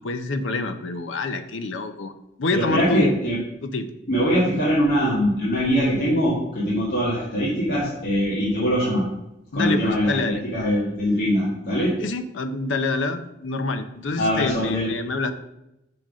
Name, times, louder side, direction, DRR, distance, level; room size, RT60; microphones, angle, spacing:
voice 1, 0.0-2.1 2.4-3.1 3.6-3.9 9.5-10.4 12.0-15.3, left 3 dB, 90° left, 9 dB, 0.6 m, -26 dB
voice 2, 2.5-3.4 4.1-9.0 9.5-11.9 14.2-14.9, equal, 55° left, -8 dB, 1.6 m, -22 dB
6.0 x 3.8 x 6.0 m, 0.87 s
head